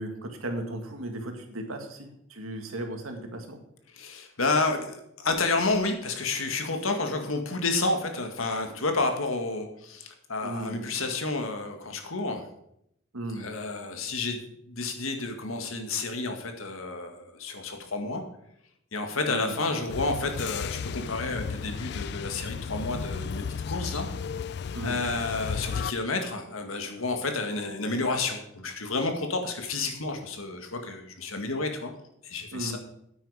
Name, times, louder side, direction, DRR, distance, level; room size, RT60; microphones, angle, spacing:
voice 1, 0.0-3.6 10.4-10.8 13.1-13.5 19.3-19.6 24.7-25.0 32.5-32.8, right 1 dB, 90° right, 4 dB, 2.0 m, -36 dB
voice 2, 3.9-12.4 13.4-14.4 14.7-18.2 18.9-24.1 24.8-31.9 32.2-32.8, left 3 dB, 85° left, 5 dB, 1.9 m, -30 dB
sound 1, 19.9-25.9, left 6 dB, 50° left, 0.3 m, -34 dB
9.5 x 9.1 x 5.0 m, 0.75 s
head